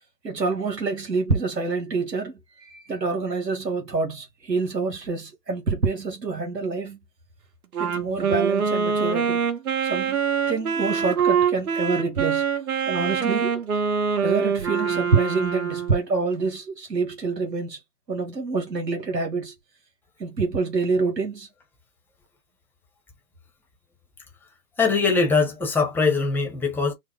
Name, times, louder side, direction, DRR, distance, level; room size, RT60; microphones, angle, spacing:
voice 1, 0.2-2.3 2.6-7.0 7.8-9.4 9.8-10.2 10.5-12.4 12.9-13.6 14.2-17.8 18.1-19.5 20.2-21.5, right 4 dB, 80° right, 1.6 m, -26 dB
Wind instrument woodwind instrument, 7.7-16.0, right 6 dB, 60° right, 1.4 m, -24 dB
voice 2, 24.8-26.9, left 4 dB, 5° left, 0.9 m, -22 dB
4.8 x 2.0 x 3.4 m
figure-of-eight pair, 120°, 49 cm